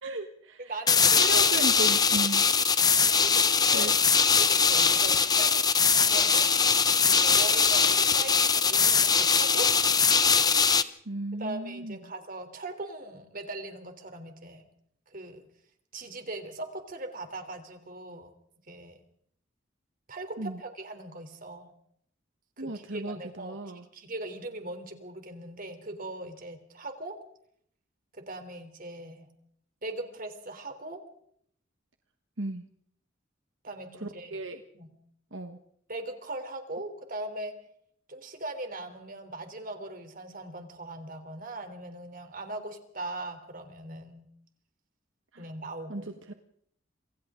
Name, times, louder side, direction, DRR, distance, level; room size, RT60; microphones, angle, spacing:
voice 1, 0.0-2.5 3.7-3.9 11.0-12.1 20.4-20.6 22.6-23.8 32.4-32.6 33.9-34.6 35.3-35.6 45.3-45.5 45.9-46.3, right 2 dB, 75° right, 6 dB, 1.4 m, -36 dB
voice 2, 0.6-1.4 2.1-2.2 3.0-3.9 4.4-5.5 5.9-6.5 7.1-9.7 11.4-14.6 15.1-15.4 15.9-18.3 18.7-19.0 20.1-21.7 22.6-27.1 28.3-29.3 29.8-31.0 33.6-34.4 34.7-34.9 35.9-37.5 38.1-44.3 45.4-46.1, right 2 dB, 45° right, 6 dB, 3.5 m, -40 dB
sound 1, 0.9-10.8, left 6 dB, 20° left, 0.9 m, -22 dB
27.5 x 26.0 x 3.8 m, 0.68 s
head